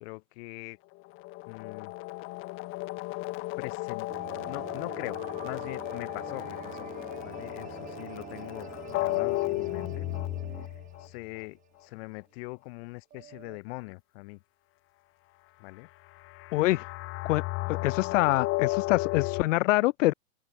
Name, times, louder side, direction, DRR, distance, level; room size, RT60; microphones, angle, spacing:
voice 1, 0.0-0.8 1.5-1.9 3.6-4.1 4.4-6.9 7.2-10.1 11.0-14.4 15.6-15.9, left 27 dB, 45° left, 1.4 m, -42 dB
sound 1, 1.0-11.1 16.2-19.4, left 22 dB, 30° left, 0.8 m, -34 dB
sound 2, 4.1-11.6 11.9-12.0 13.1-13.6, right 11 dB, 20° right, 0.9 m, -45 dB
voice 2, 16.5-16.9 17.3-17.4 17.7-20.1, left 18 dB, 65° left, 0.5 m, -25 dB
hypercardioid pair, 125°, 41 cm